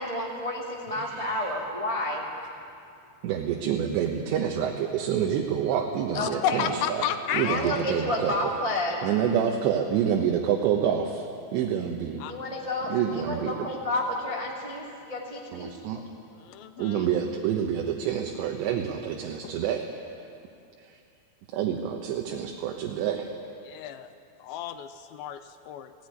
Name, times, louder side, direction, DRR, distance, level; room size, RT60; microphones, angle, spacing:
voice 1, 0.0-2.2 6.1-6.8 7.4-9.0 12.3-16.0, left 1 dB, 35° right, -3 dB, 0.6 m, -31 dB
voice 2, 1.0-1.5 3.2-6.7 7.3-8.3 9.0-11.3 11.5-12.2 12.9-13.6 15.5-16.0 16.8-19.8 21.5-23.3, right 9 dB, 80° right, 2 dB, 3.3 m, -27 dB
voice 3, 6.1-7.7 12.2-12.3 16.3-17.1 23.6-24.1 24.4-25.9, left 9 dB, 80° left, 9 dB, 2.2 m, -32 dB
17.5 x 17.0 x 9.7 m, 2.5 s
omnidirectional pair, 5.0 m